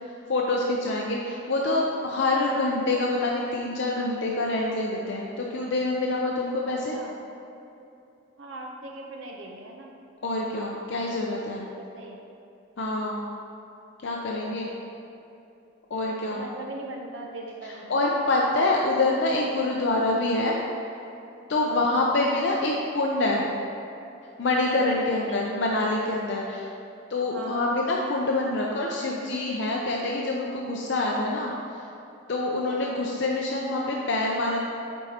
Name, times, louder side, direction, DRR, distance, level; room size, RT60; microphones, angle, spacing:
voice 1, 0.3-7.0 10.2-11.7 12.8-13.2 14.0-14.7 15.9-16.4 17.9-20.6 21.5-23.5 24.4-26.7 27.1-31.8 32.3-34.6, left 2 dB, 60° left, -2 dB, 0.5 m, -26 dB
voice 2, 8.4-9.9 11.8-12.2 14.3-14.8 16.3-18.1 21.7-22.1 25.1-25.5 27.3-27.7 32.7-33.0, right 2 dB, 65° right, 1 dB, 0.6 m, -39 dB
8.9 x 4.5 x 2.8 m, 2.7 s
head